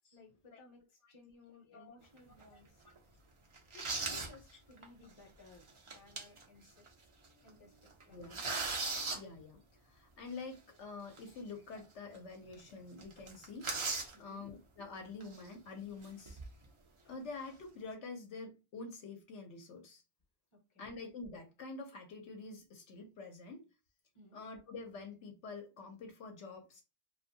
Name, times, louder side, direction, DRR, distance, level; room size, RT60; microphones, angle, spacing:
voice 1, 0.1-0.8 1.1-2.7 3.7-5.6 5.9-6.8 7.4-7.7 8.1-8.4 14.1-14.5 20.7-21.0 24.1-24.4, left 2 dB, 30° left, 0.7 m, -59 dB
voice 2, 1.7-2.0 2.5-2.6 4.1-4.2 8.1-8.4 9.1-9.6 9.9-16.4 17.0-20.0 20.8-23.6 24.3-26.8, left 3 dB, 70° left, 0.9 m, -47 dB
sound 1, 2.2-2.4 2.9-3.0 3.5-4.3 4.8-4.9 5.7-6.4 6.9-7.0 7.2-7.5 7.9-9.2 11.2-11.3 11.7-11.8 12.1-12.2 12.5-12.7 13.0-14.1 15.2-15.5 16.0-16.6, right 3 dB, 45° right, 0.4 m, -38 dB
2.6 x 2.4 x 2.6 m
omnidirectional pair, 1.3 m